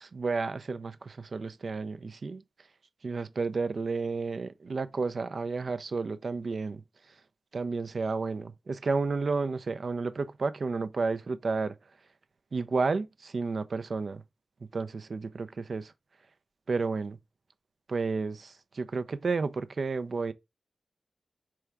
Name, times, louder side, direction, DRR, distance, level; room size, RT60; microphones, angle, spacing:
voice 1, 0.0-2.4 3.0-6.8 7.5-11.8 12.5-14.2 14.7-15.9 16.7-17.2 17.9-20.3, right 4 dB, 60° right, 0.5 m, -31 dB
4.5 x 3.5 x 3.3 m
wide cardioid pair, 100°, 0 cm